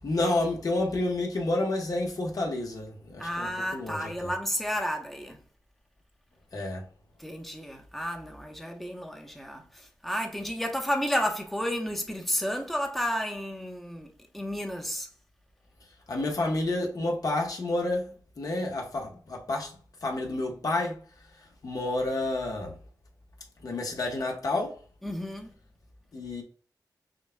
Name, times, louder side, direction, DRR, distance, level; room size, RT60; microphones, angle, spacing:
voice 1, 0.0-4.3 6.5-6.8 16.1-21.0 21.4-22.7 23.6-24.8 26.1-26.4, left 2 dB, 60° left, 1.1 m, -30 dB
voice 2, 3.2-5.4 7.2-14.1 14.3-15.1 25.0-25.5, equal, ahead, 0.8 m, -32 dB
6.3 x 2.2 x 2.2 m
wide cardioid pair, 120°, 7 cm